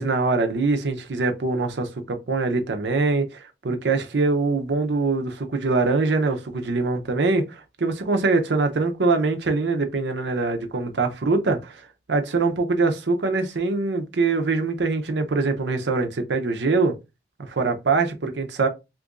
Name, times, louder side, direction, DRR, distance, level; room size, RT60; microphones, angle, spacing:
voice 1, 0.0-11.8 12.1-17.0 17.4-18.7, right 3 dB, 80° right, 0.6 m, -23 dB
2.9 x 2.5 x 3.6 m
head